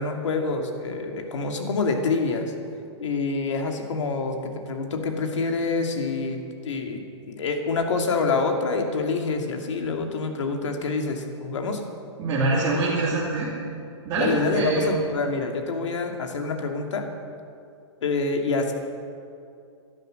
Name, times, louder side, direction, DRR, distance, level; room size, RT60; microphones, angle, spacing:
voice 1, 0.0-2.5 3.0-11.8 14.2-17.1 18.0-18.7, left 4 dB, 80° left, 3 dB, 2.5 m, -27 dB
voice 2, 12.2-13.5 14.0-14.9, right 2 dB, 25° right, -8 dB, 2.9 m, -24 dB
17.5 x 12.0 x 6.6 m, 2.5 s
hypercardioid pair, 165°, 15 cm